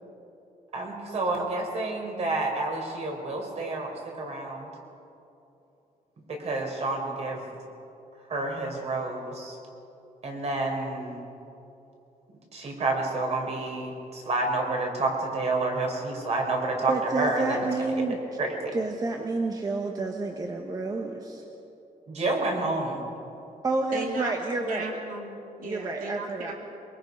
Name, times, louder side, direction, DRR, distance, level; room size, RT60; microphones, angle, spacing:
voice 1, 0.7-3.9 4.2-4.7 6.3-7.4 8.3-9.6 10.2-11.2 12.5-17.7 18.0-18.1 18.4-18.7 22.1-23.0, right 2 dB, 45° right, 1 dB, 4.2 m, -29 dB
voice 2, 16.9-18.2 18.7-21.4 23.6-24.9 25.6-26.5, right 3 dB, 25° right, 3 dB, 1.2 m, -29 dB
voice 3, 23.9-24.3 24.6-26.5, right 3 dB, 65° right, 0 dB, 3.2 m, -36 dB
23.5 x 22.5 x 5.4 m, 2.8 s
wide cardioid pair, 175°, 15 cm